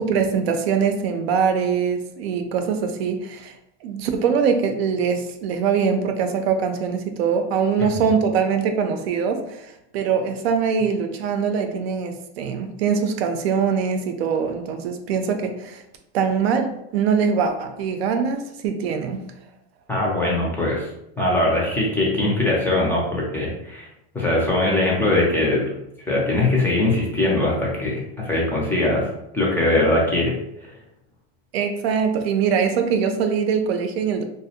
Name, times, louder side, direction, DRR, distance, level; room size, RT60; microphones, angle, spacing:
voice 1, 0.0-3.5 3.8-15.8 16.1-19.2 31.5-34.2, right 6 dB, 80° right, 6 dB, 0.5 m, -23 dB
voice 2, 19.9-20.9 21.2-23.9 24.1-25.7 26.1-29.1 29.3-30.3, left 2 dB, 5° left, -4 dB, 0.4 m, -21 dB
2.4 x 2.0 x 2.7 m, 0.81 s
supercardioid pair, 135°, 31 cm